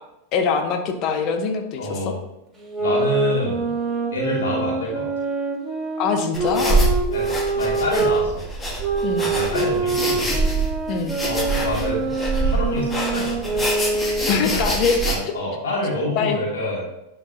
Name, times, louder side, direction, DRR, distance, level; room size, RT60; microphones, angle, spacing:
voice 1, 0.3-2.0 6.0-6.8 9.0-9.3 10.9-11.1 14.3-15.0 16.2-16.4, left 5 dB, 45° left, 5 dB, 1.0 m, -23 dB
voice 2, 1.8-2.1 2.8-3.7 4.1-5.1 6.7-6.8 7.1-8.4 9.2-10.4 11.2-12.1 12.4-13.6 14.2-14.7 15.1-16.9, left 1 dB, 70° left, -4 dB, 2.4 m, -27 dB
sound 1, 2.6-8.2 8.8-14.4, right 3 dB, 15° right, 2.8 m, -25 dB
sound 2, 6.3-15.2, right 2 dB, 15° left, 1.6 m, -25 dB
11.0 x 4.6 x 2.8 m, 0.89 s
hypercardioid pair, 95°, 0 cm